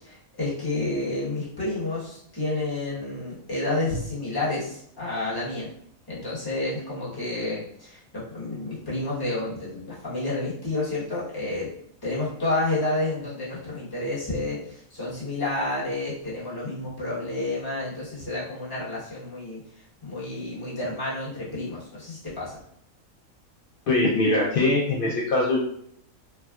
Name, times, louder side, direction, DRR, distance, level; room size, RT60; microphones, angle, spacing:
voice 1, 0.0-5.7 6.1-11.7 12.0-19.6 20.0-22.6, left 2 dB, 20° left, -8 dB, 1.0 m, -30 dB
voice 2, 23.9-25.6, left 2 dB, 65° left, -5 dB, 0.5 m, -22 dB
3.4 x 2.1 x 2.3 m, 0.70 s
omnidirectional pair, 1.5 m